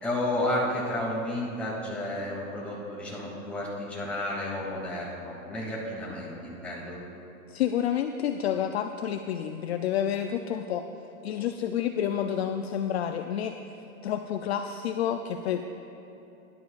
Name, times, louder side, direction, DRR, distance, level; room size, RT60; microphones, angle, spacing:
voice 1, 0.0-7.0, left 1 dB, 5° left, -7 dB, 2.3 m, -32 dB
voice 2, 7.5-10.9 11.2-13.6 14.0-15.8, left 9 dB, 50° left, 7 dB, 0.5 m, -29 dB
17.5 x 11.5 x 2.4 m, 2.9 s
hypercardioid pair, 150°, 43 cm